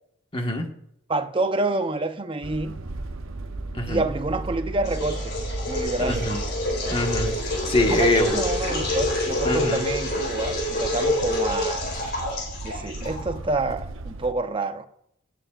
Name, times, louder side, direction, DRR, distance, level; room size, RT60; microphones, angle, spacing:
voice 1, 0.3-0.6 3.7-4.0 6.0-6.4 6.9-8.4 9.4-9.8, left 1 dB, 25° left, 1.4 m, -24 dB
voice 2, 1.1-2.8 3.9-5.3 5.7-6.3 7.9-11.9 12.6-14.9, right 2 dB, 25° right, 0.7 m, -28 dB
sound 1, 2.4-14.3, right 2 dB, 80° right, 0.8 m, -34 dB
sound 2, 4.8-13.4, left 2 dB, 50° left, 3.9 m, -28 dB
17.0 x 9.1 x 2.5 m
head